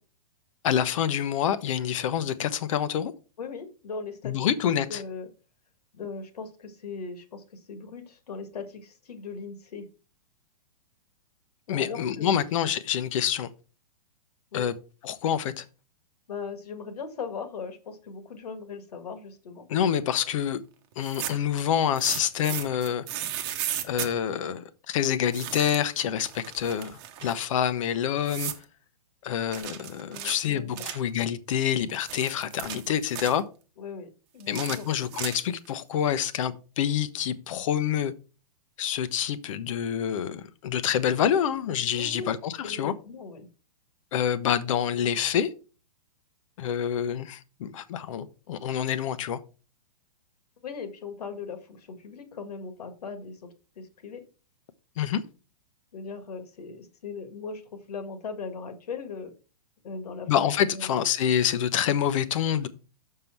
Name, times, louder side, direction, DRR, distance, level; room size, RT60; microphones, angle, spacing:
voice 1, 0.6-3.1 4.2-5.0 11.7-13.5 14.5-14.7 15.0-15.6 19.7-20.6 21.0-23.0 23.8-28.5 29.2-33.4 34.5-38.1 38.8-42.9 44.1-45.5 46.6-49.4 55.0-55.2 60.3-62.7, left 9 dB, 55° left, 0.8 m, -27 dB
voice 2, 3.4-4.3 4.9-5.3 5.9-9.8 11.7-12.4 14.5-14.7 16.3-19.7 30.1-30.9 33.8-34.9 41.9-42.3 42.6-43.5 50.6-54.2 55.9-57.6 57.9-59.3 59.8-60.3 60.7-61.0, left 5 dB, 80° left, 1.8 m, -39 dB
sound 1, 20.9-21.5 22.0-24.1 25.3-25.9 26.2-27.4 28.3-28.6 29.5-31.1 31.8-33.4 34.4-35.7, right 11 dB, 35° right, 1.0 m, -35 dB
6.6 x 5.6 x 4.4 m
hypercardioid pair, 145°, 20 cm